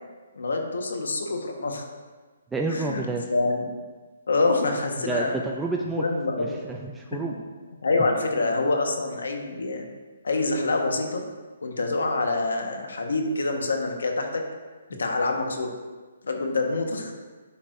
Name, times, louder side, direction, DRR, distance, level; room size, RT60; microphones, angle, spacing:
voice 1, 0.3-1.8 2.7-3.0 3.3-3.7 4.3-5.3 6.0-6.6 7.3-7.4 7.8-9.9 10.2-11.2 11.6-14.4 15.0-15.7 16.2-17.1, left 3 dB, 90° left, 3 dB, 1.3 m, -26 dB
voice 2, 2.5-3.3 5.0-6.0 6.4-7.3 14.9-15.0, right 3 dB, 5° right, 0 dB, 0.4 m, -29 dB
9.8 x 6.3 x 2.6 m, 1.3 s
hypercardioid pair, 165°, 0 cm